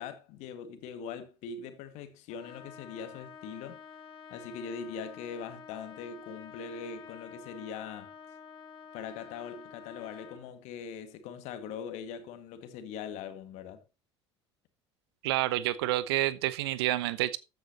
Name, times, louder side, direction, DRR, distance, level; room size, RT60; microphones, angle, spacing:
voice 1, 0.0-3.8 4.3-8.1 8.9-13.8, left 6 dB, 50° left, 1.9 m, -41 dB
Trumpet, 2.3-10.5, left 6 dB, 35° left, 4.7 m, -49 dB
voice 2, 15.2-17.4, right 15 dB, 60° right, 1.0 m, -28 dB
14.0 x 9.5 x 2.8 m
figure-of-eight pair, 70°, 15 cm